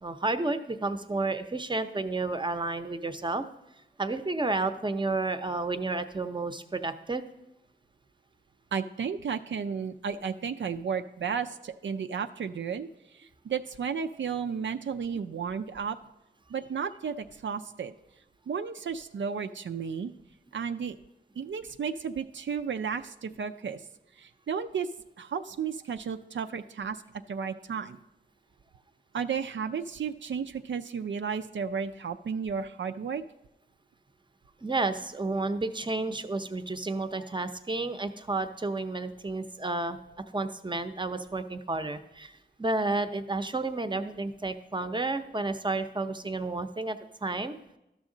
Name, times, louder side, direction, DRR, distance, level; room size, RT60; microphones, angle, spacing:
voice 1, 0.0-3.4 4.0-7.2 34.6-40.0 40.3-47.6, right 3 dB, 25° right, 9 dB, 0.6 m, -31 dB
voice 2, 8.7-16.0 16.5-17.9 18.5-20.1 20.5-21.0 21.4-23.9 24.1-24.9 25.2-27.0 27.3-28.0 29.1-33.2, right 6 dB, 80° right, 7 dB, 0.4 m, -33 dB
12.5 x 6.2 x 3.8 m, 0.89 s
wide cardioid pair, 70°, 19 cm